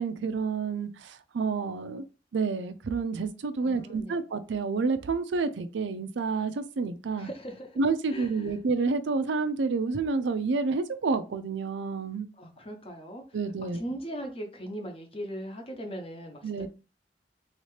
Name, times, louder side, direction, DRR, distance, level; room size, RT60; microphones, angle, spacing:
voice 1, 0.0-2.1 2.3-7.3 7.8-12.3 13.3-13.8 16.4-16.7, right 4 dB, 90° right, 0.4 m, -29 dB
voice 2, 3.6-4.2 7.2-7.8 8.1-8.5 12.4-13.2 13.6-16.7, equal, 35° left, 0.8 m, -39 dB
3.2 x 2.8 x 3.2 m
head